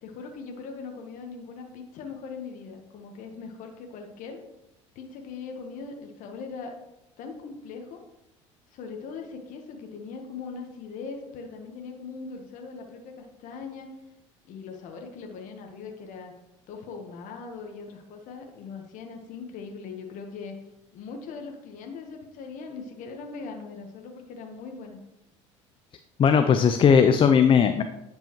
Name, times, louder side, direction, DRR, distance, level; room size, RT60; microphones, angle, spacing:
voice 1, 0.0-4.4 4.9-6.8 7.2-8.0 8.7-13.9 14.4-16.3 16.7-20.6 20.9-25.0, left 5 dB, 60° left, 3 dB, 1.2 m, -40 dB
voice 2, 26.2-27.8, left 7 dB, 35° left, 8 dB, 0.5 m, -18 dB
10.0 x 5.4 x 3.0 m, 0.88 s
hypercardioid pair, 75°, 15 cm